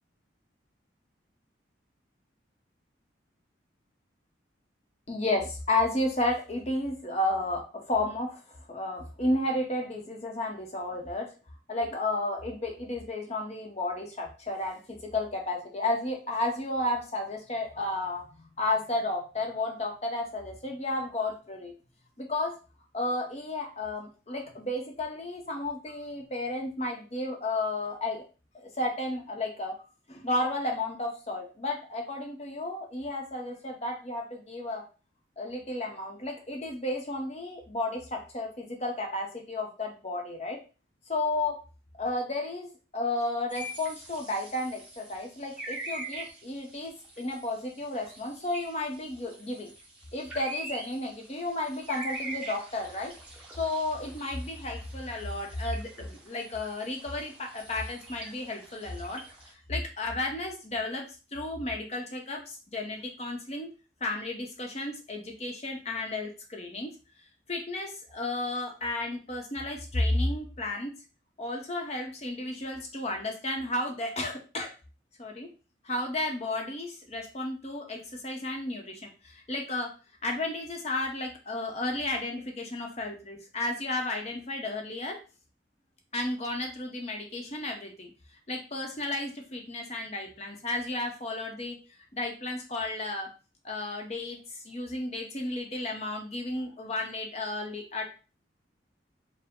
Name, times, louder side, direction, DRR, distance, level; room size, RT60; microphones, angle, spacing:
voice 1, 5.1-11.3 11.7-21.7 22.2-22.5 22.9-28.2 28.5-29.8 30.1-34.8 35.4-40.6 41.1-41.6 42.0-42.7 42.9-49.7 50.1-53.1 53.6-59.2 59.7-63.7 64.0-66.9 67.5-70.9 71.4-74.7 75.2-75.5 75.8-79.9 80.2-85.2 86.1-88.1 88.5-91.8 92.1-93.3 93.6-98.0, left 2 dB, 35° left, 2 dB, 0.8 m, -32 dB
sound 1, 43.5-59.5, right 2 dB, 5° right, 1.0 m, -44 dB
4.8 x 2.1 x 3.6 m, 0.34 s
head